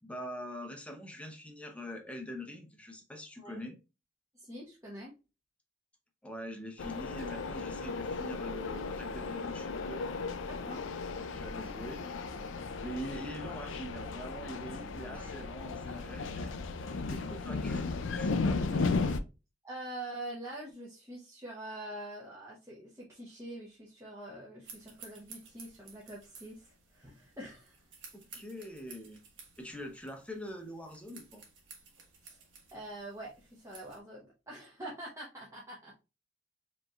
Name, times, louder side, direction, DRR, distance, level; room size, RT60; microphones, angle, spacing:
voice 1, 0.0-3.8 6.2-10.1 11.1-12.0 12.8-16.6 16.8-19.0 28.1-29.2 29.6-31.4, equal, 5° left, 0.8 m, -44 dB
voice 2, 4.3-5.1 10.5-10.8 15.1-15.3 19.6-27.8 32.2-32.4 32.7-36.0, right 1 dB, 15° right, 1.0 m, -45 dB
sound 1, 6.8-19.2, left 4 dB, 85° left, 0.5 m, -35 dB
sound 2, 24.6-34.0, right 5 dB, 75° right, 1.4 m, -55 dB
5.0 x 3.2 x 2.4 m
head